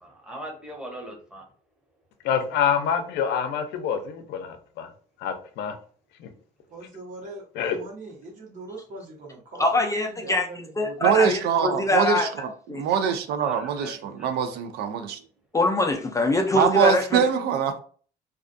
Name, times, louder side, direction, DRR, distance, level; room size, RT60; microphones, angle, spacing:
voice 1, 0.0-1.4 13.4-13.9, equal, 5° right, 0.8 m, -39 dB
voice 2, 2.2-4.9 5.2-5.7 6.2-6.3 7.6-7.8, left 7 dB, 80° left, 0.5 m, -26 dB
voice 3, 6.7-11.2, right 2 dB, 50° right, 1.0 m, -41 dB
voice 4, 9.6-10.5 10.8-12.3 12.7-12.8 15.5-17.2, left 2 dB, 20° left, 0.3 m, -23 dB
voice 5, 11.0-15.2 16.5-17.8, right 8 dB, 75° right, 0.4 m, -23 dB
2.3 x 2.3 x 2.5 m
cardioid pair, 110°, 17 cm